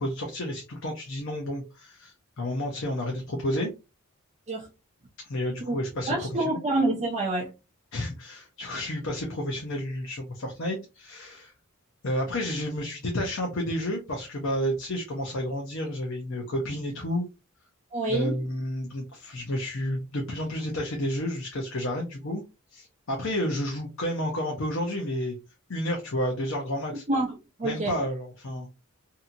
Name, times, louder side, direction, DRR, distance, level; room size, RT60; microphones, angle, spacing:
voice 1, 0.0-3.7 5.2-6.6 7.9-11.5 12.0-17.3 18.1-22.4 22.7-25.4 25.7-27.0 27.6-28.8, left 1 dB, 55° left, 0.6 m, -31 dB
voice 2, 6.1-7.5 17.9-18.3 27.1-27.9, right 2 dB, 30° right, 0.5 m, -27 dB
2.7 x 2.7 x 2.5 m
head